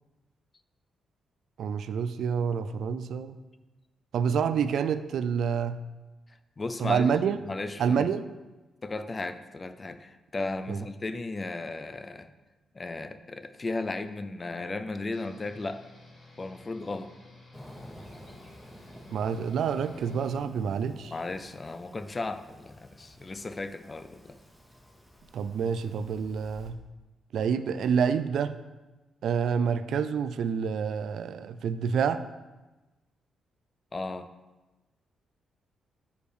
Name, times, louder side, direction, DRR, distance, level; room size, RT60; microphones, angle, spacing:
voice 1, 1.6-3.3 4.1-5.8 6.8-7.4 7.8-8.2 10.7-10.8 19.1-21.1 25.3-26.8 27.3-28.5 29.2-32.2, right 7 dB, 65° right, 13 dB, 0.3 m, -28 dB
voice 2, 6.3-7.1 7.5-8.1 8.8-12.3 12.7-15.9 16.4-17.1 21.1-24.4 33.9-34.3, left 3 dB, 20° left, 11 dB, 0.4 m, -35 dB
sound 1, 15.1-20.4, left 2 dB, 60° left, 2.3 m, -53 dB
Fireworks, 17.5-26.7, left 1 dB, 5° left, 0.7 m, -50 dB
6.6 x 5.1 x 4.9 m, 1.1 s
cardioid pair, 150°, 0 cm